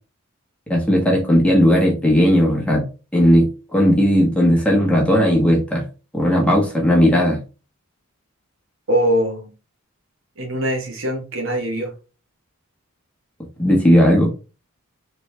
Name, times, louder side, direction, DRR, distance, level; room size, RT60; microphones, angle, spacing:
voice 1, 0.7-2.9 3.1-5.8 6.1-7.4 13.6-14.3, equal, 5° left, 1.2 m, -16 dB
voice 2, 8.9-9.5 10.4-11.9, equal, 60° right, 1.2 m, -22 dB
4.4 x 3.3 x 3.3 m
head